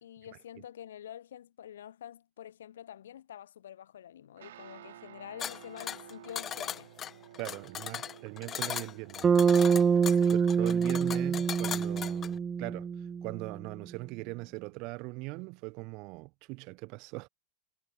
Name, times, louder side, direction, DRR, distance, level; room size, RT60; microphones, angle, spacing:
voice 1, 0.0-6.9 10.1-10.3, left 10 dB, 60° left, 1.4 m, -47 dB
Guitar, 4.4-15.8, right 13 dB, 60° right, 3.7 m, -55 dB
sound 1, 5.4-12.4, left 9 dB, 25° left, 1.5 m, -38 dB
voice 2, 7.4-9.4 10.3-12.9 13.2-17.3, right 27 dB, 45° right, 1.3 m, -40 dB
Bass guitar, 9.2-13.6, right 6 dB, 20° right, 0.4 m, -26 dB
figure-of-eight pair, 90°, 0 cm